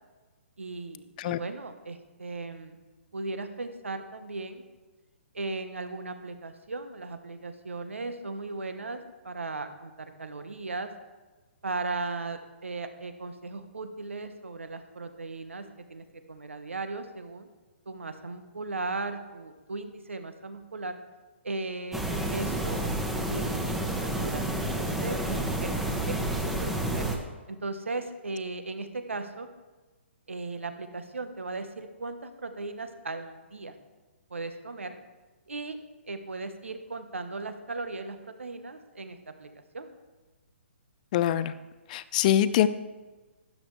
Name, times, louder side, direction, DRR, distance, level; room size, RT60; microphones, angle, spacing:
voice 1, 0.6-2.8 3.1-4.6 5.3-10.9 11.6-17.5 17.9-21.0 21.4-22.8 23.3-27.0 27.5-29.5 30.3-33.7 34.3-35.0 35.5-35.8 36.0-39.5 39.7-39.9, right 3 dB, 80° right, 9 dB, 1.2 m, -37 dB
sound 1, 21.9-27.2, right 1 dB, 5° right, 1.1 m, -30 dB
voice 2, 41.1-41.5 41.9-42.7, left 11 dB, 40° left, 15 dB, 0.5 m, -24 dB
12.5 x 10.5 x 3.3 m, 1.2 s
figure-of-eight pair, 130°, 7 cm